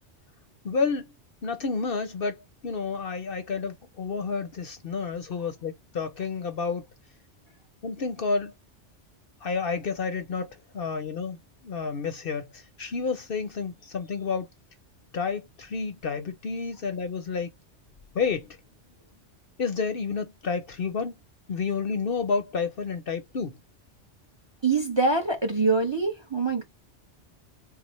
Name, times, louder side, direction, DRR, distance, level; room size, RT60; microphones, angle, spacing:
voice 1, 0.6-1.1 1.4-6.9 7.8-8.5 9.4-11.4 11.6-14.5 15.1-17.5 18.1-18.5 19.6-21.1 21.5-23.6, left 5 dB, 55° left, 0.8 m, -30 dB
voice 2, 24.6-26.6, right 3 dB, 25° right, 0.8 m, -24 dB
4.0 x 2.1 x 3.1 m
omnidirectional pair, 1.2 m